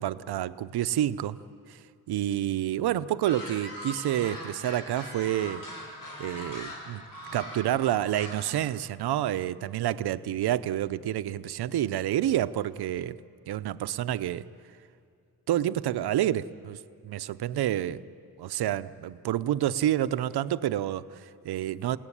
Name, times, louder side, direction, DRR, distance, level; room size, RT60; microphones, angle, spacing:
voice 1, 0.0-1.4 1.7-1.8 2.1-5.6 6.2-7.0 7.3-13.2 13.5-14.5 15.5-16.8 17.0-18.0 18.4-22.0, right 12 dB, 85° right, 12 dB, 0.8 m, -28 dB
sound 1, 3.2-8.5, left 1 dB, 65° left, 6.7 m, -41 dB
28.5 x 18.0 x 10.0 m, 2.4 s
wide cardioid pair, 175°, 38 cm